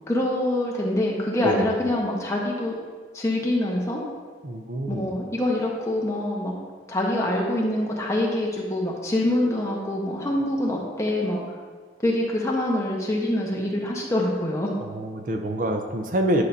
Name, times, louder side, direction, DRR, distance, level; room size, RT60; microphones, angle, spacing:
voice 1, 0.1-2.8 3.1-4.0 4.9-6.5 6.9-11.4 12.0-14.7, left 1 dB, 15° left, -3 dB, 1.0 m, -25 dB
voice 2, 4.4-5.1 14.8-16.4, right 1 dB, 45° right, 4 dB, 0.5 m, -26 dB
10.5 x 5.7 x 2.7 m, 1.6 s
head